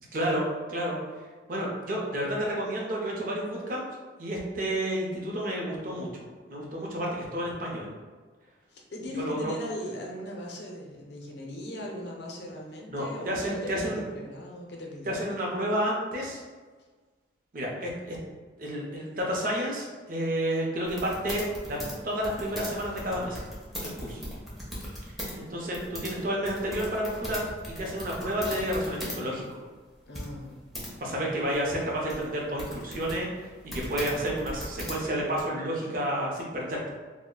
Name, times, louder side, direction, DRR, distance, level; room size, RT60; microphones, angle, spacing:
voice 1, 0.1-1.0 1.5-3.8 4.2-7.9 9.2-9.5 12.9-14.0 15.1-16.4 17.5-18.2 18.6-21.8 22.0-23.4 23.8-24.2 25.3-29.6 31.0-36.9, equal, 45° right, -2 dB, 0.6 m, -30 dB
voice 2, 8.7-15.1 30.1-30.6 31.0-31.2, left 1 dB, 65° left, -1 dB, 0.5 m, -39 dB
sound 1, 20.8-25.3 25.6-29.2 29.5-29.6 30.1-30.9 31.5-35.4, equal, ahead, 0.5 m, -39 dB
2.3 x 2.0 x 3.7 m, 1.4 s
head